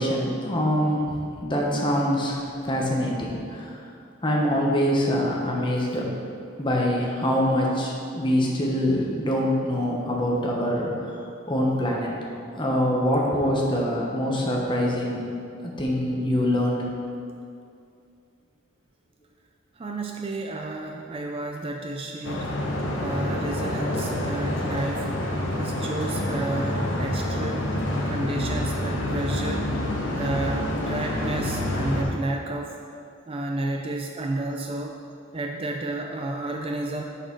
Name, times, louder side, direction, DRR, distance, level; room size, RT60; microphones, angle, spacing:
voice 1, 0.0-3.7 4.2-6.1 6.6-11.2 11.5-12.1 12.6-15.2 15.6-16.9, equal, 25° left, -2 dB, 1.1 m, -24 dB
voice 2, 19.8-22.5 23.0-25.1 25.5-27.7 28.1-29.7 30.1-32.7 33.3-34.9 35.3-37.0, right 2 dB, 30° right, 2 dB, 0.4 m, -31 dB
sound 1, 22.2-32.0, left 1 dB, 65° left, 1.0 m, -27 dB
6.5 x 6.4 x 4.6 m, 2.4 s
head